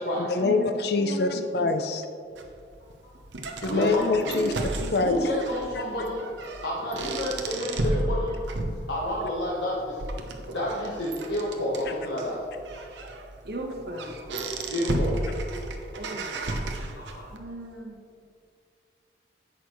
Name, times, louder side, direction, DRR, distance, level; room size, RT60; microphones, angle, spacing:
voice 1, 0.2-2.0 3.6-4.5 4.9-5.2, left 3 dB, 60° left, 7 dB, 0.6 m, -25 dB
voice 2, 1.0-1.4 4.4-4.9 13.4-14.2 15.9-16.3 17.3-18.0, right 1 dB, 60° right, 1 dB, 1.3 m, -37 dB
sound 1, 2.4-17.4, right 2 dB, 85° right, 0.9 m, -33 dB
voice 3, 3.7-4.4 5.0-6.2 6.6-8.4 8.9-10.0 10.5-12.4 13.9-15.2 16.4-17.2, left 1 dB, 75° left, -6 dB, 1.4 m, -30 dB
10.5 x 8.2 x 3.1 m, 2.3 s
head